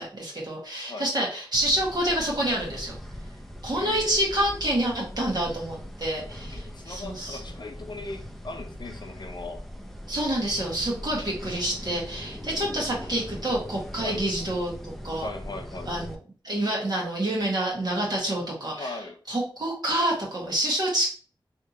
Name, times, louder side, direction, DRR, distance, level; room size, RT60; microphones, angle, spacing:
voice 1, 0.0-3.0 3.6-7.4 10.1-15.3 15.9-16.1 16.4-18.9 19.3-21.1, right 1 dB, 50° right, -3 dB, 1.6 m, -28 dB
sound 1, 1.5-16.2, equal, 5° left, 0.5 m, -40 dB
voice 2, 3.7-4.3 6.5-9.6 14.0-14.2 15.2-15.9 18.7-19.2, left 3 dB, 55° left, 5 dB, 0.6 m, -38 dB
3.3 x 2.8 x 2.8 m, 0.40 s
wide cardioid pair, 75°, 9 cm